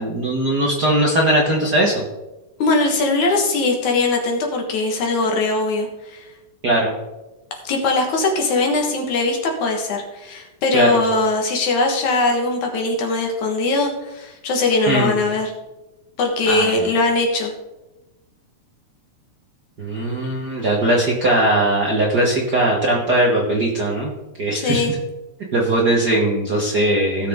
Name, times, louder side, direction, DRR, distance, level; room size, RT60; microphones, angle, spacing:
voice 1, 0.0-2.0 6.6-6.9 10.7-11.0 14.9-15.2 16.5-16.7 19.8-24.1 24.4-24.8 25.5-27.3, right 1 dB, 50° right, -3 dB, 1.3 m, -19 dB
voice 2, 2.6-6.3 7.6-15.5 16.2-17.5 24.5-24.9, left 3 dB, 65° left, 2 dB, 2.8 m, -20 dB
16.5 x 6.6 x 3.6 m, 1.0 s
omnidirectional pair, 3.7 m